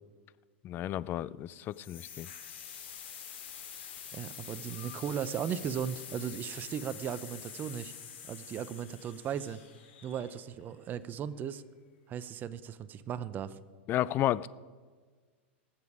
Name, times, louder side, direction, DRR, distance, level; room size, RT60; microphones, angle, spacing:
voice 1, 0.6-2.3 13.9-14.5, left 13 dB, 35° left, 19 dB, 0.4 m, -32 dB
sound 1, 1.7-10.6, left 8 dB, 70° left, 2.5 m, -46 dB
voice 2, 4.1-7.9 8.2-9.6 10.0-11.6 12.1-13.6, right 8 dB, 30° right, 14 dB, 0.6 m, -37 dB
20.0 x 7.3 x 4.8 m, 1.5 s
hypercardioid pair, 125°, 6 cm